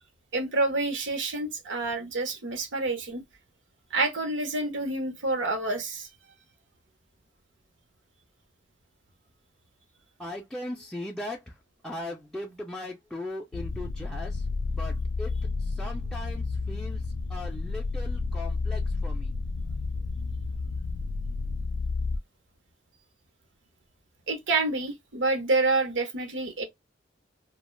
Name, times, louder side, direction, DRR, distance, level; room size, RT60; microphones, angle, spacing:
voice 1, 0.3-3.2 3.9-6.1 24.3-26.6, right 3 dB, 85° right, 0.8 m, -28 dB
voice 2, 10.2-11.6 11.8-15.3 15.6-17.0 17.3-19.3, left 1 dB, 5° left, 0.3 m, -39 dB
sound 1, 13.5-22.2, left 3 dB, 85° left, 0.4 m, -31 dB
2.4 x 2.2 x 3.0 m
head